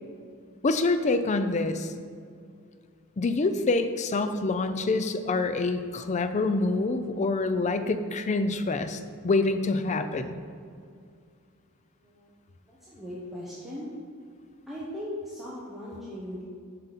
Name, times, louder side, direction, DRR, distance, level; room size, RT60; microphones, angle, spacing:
voice 1, 0.6-1.9 3.2-9.0 9.2-10.4, left 3 dB, 30° left, 9 dB, 0.4 m, -26 dB
voice 2, 12.0-12.3 12.7-13.9 14.7-16.4, left 1 dB, ahead, -9 dB, 1.0 m, -38 dB
8.0 x 5.3 x 4.1 m, 2.3 s
head